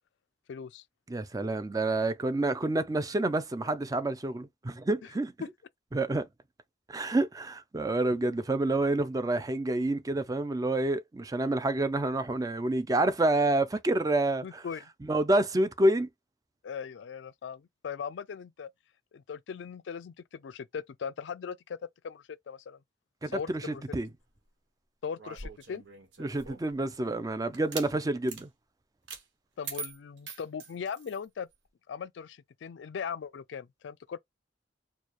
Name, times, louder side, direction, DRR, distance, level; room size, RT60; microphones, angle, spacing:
voice 1, 0.5-0.8 5.4-5.5 14.4-14.9 16.6-18.7 19.1-21.8 22.0-22.8 23.3-23.8 25.0-25.8 29.6-31.5 31.9-34.2, left 6 dB, 75° left, 0.4 m, -39 dB
voice 2, 1.1-5.3 5.9-6.3 6.9-14.6 15.1-16.1 23.2-24.1 26.2-28.5, right 2 dB, 20° right, 0.4 m, -28 dB
sound 1, 25.2-26.8 27.5-27.9 28.3-28.4 29.1-29.2 29.6-31.2, right 5 dB, 90° right, 1.2 m, -42 dB
4.5 x 2.2 x 3.0 m
head